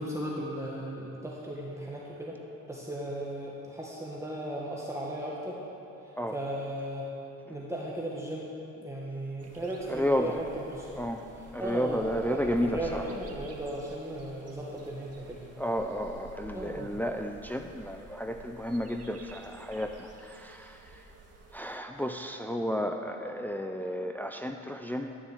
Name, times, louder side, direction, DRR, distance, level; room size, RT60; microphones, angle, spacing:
voice 1, 0.0-2.4 2.7-5.6 6.3-7.1 7.5-8.5 8.8-10.4 10.7-11.0 11.6-12.0 12.3-15.4 16.5-16.9, right 1 dB, 10° right, -5 dB, 1.7 m, -36 dB
sound 1, 9.4-21.8, right 3 dB, 55° right, 1.7 m, -50 dB
voice 2, 9.9-10.4 10.9-11.2 11.5-13.0 15.6-20.8 21.5-25.2, equal, 5° left, 5 dB, 0.6 m, -32 dB
12.5 x 7.0 x 7.5 m, 3.0 s
cardioid pair, 90°, 30 cm